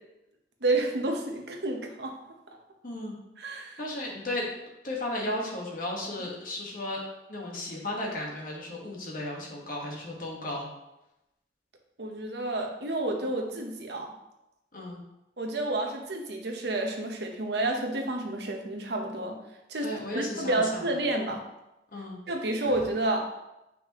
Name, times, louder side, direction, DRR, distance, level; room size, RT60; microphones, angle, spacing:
voice 1, 0.6-2.1 3.4-3.8 12.0-14.1 15.4-19.4 19.7-21.4 22.3-23.3, right 2 dB, 65° right, 2 dB, 1.0 m, -30 dB
voice 2, 2.8-3.1 3.8-4.5 4.8-7.0 7.3-10.7 14.7-15.0 19.8-21.0 21.9-22.2, left 1 dB, 50° left, -2 dB, 1.6 m, -34 dB
7.5 x 5.6 x 3.1 m, 0.92 s
head